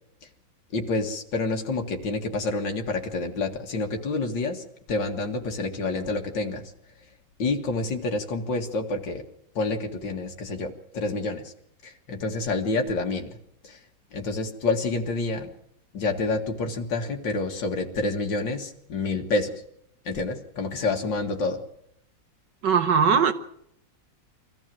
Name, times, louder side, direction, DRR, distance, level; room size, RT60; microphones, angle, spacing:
voice 1, 0.7-6.7 7.4-9.2 9.5-11.5 11.8-13.3 13.6-13.8 14.1-15.5 15.9-19.6 20.0-21.6, left 3 dB, 85° left, 3 dB, 2.5 m, -28 dB
voice 2, 22.6-23.3, right 6 dB, 70° right, 10 dB, 1.9 m, -19 dB
23.0 x 15.0 x 7.6 m, 0.73 s
omnidirectional pair, 2.0 m